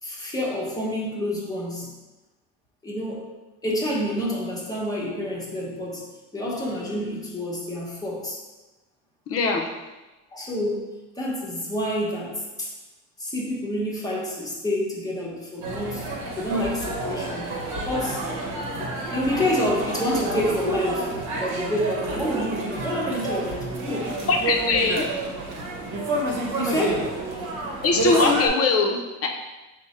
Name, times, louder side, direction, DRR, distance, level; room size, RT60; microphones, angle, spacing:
voice 1, 0.0-1.9 2.8-3.3 3.6-6.0 6.3-8.4 10.3-12.7 13.2-16.1 16.4-17.6 17.9-18.3 18.8-21.1 21.4-24.1 26.6-27.2, left 1 dB, 10° left, -4 dB, 0.9 m, -28 dB
voice 2, 9.3-9.6 24.3-25.0 27.8-29.3, left 3 dB, 45° left, 3 dB, 0.6 m, -21 dB
sound 1, 15.6-28.5, right 2 dB, 70° right, 0.9 m, -29 dB
4.5 x 2.1 x 4.1 m, 1.1 s
cardioid pair, 135°, 31 cm